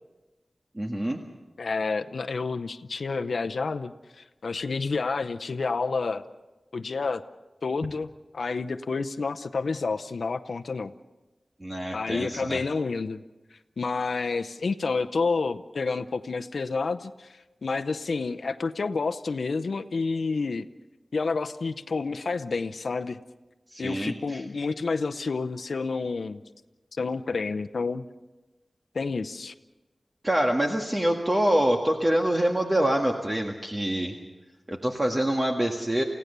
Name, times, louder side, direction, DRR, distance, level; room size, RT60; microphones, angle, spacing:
voice 1, 0.8-1.2 11.6-12.6 23.7-24.4 30.2-34.1 34.7-36.0, right 1 dB, 25° right, 1 dB, 1.8 m, -25 dB
voice 2, 1.6-6.2 6.7-7.2 7.6-8.1 8.3-10.9 11.9-13.2 13.8-20.7 21.1-23.2 23.8-26.4 27.0-28.0 28.9-29.5, left 4 dB, 80° left, 9 dB, 0.7 m, -29 dB
29.5 x 16.5 x 6.8 m, 1.1 s
wide cardioid pair, 90°, 0 cm